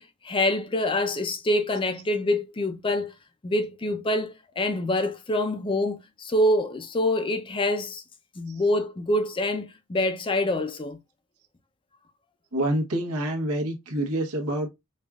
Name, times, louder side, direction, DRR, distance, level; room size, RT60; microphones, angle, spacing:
voice 1, 0.0-3.1 3.4-8.0 8.4-11.0, left 1 dB, 25° left, 0.5 m, -26 dB
voice 2, 12.5-14.7, right 1 dB, 90° right, 1.1 m, -27 dB
5.2 x 2.4 x 2.3 m
head